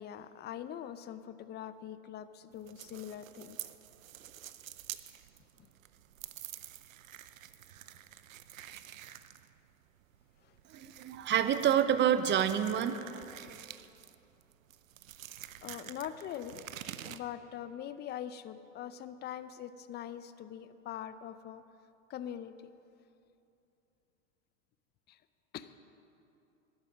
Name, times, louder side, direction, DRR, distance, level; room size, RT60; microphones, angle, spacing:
voice 1, 0.0-3.7 5.6-5.7 10.4-10.6 15.6-16.7 17.0-21.6 22.1-22.7 25.1-25.2 25.5-25.7, left 10 dB, 25° left, 13 dB, 0.6 m, -43 dB
sound 1, 2.5-17.2, right 12 dB, 85° right, 0.7 m, -49 dB
voice 2, 10.7-13.2, right 9 dB, 30° right, 11 dB, 0.8 m, -28 dB
12.0 x 10.5 x 7.4 m, 2.7 s
hypercardioid pair, 100°, 39 cm